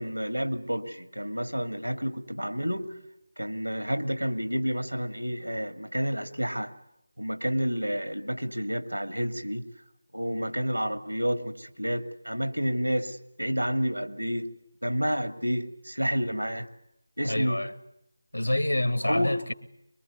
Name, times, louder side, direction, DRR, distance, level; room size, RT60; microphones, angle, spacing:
voice 1, 0.0-2.9 3.4-6.7 7.2-9.6 10.1-14.5 14.8-16.7 17.2-17.6 19.0-19.4, equal, 85° right, 2.4 m, -30 dB
voice 2, 17.2-17.7 18.3-19.5, left 1 dB, 80° left, 2.1 m, -27 dB
23.5 x 23.0 x 9.4 m
figure-of-eight pair, 165°, 0 cm